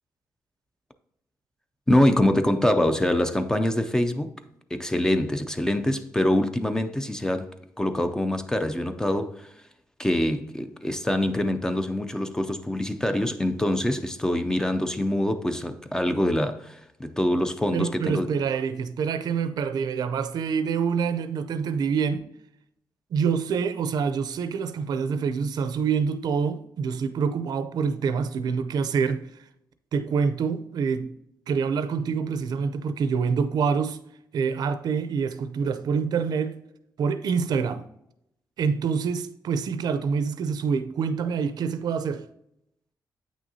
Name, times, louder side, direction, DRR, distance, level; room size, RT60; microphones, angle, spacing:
voice 1, 1.9-4.3 4.7-9.5 10.0-18.3, left 1 dB, 10° left, 0.4 m, -25 dB
voice 2, 17.7-22.2 23.1-29.3 29.9-31.1 31.5-34.0 34.3-36.6 37.0-37.8 38.6-42.2, right 6 dB, 70° right, 0.5 m, -26 dB
8.6 x 6.2 x 2.7 m
wide cardioid pair, 150°, 7 cm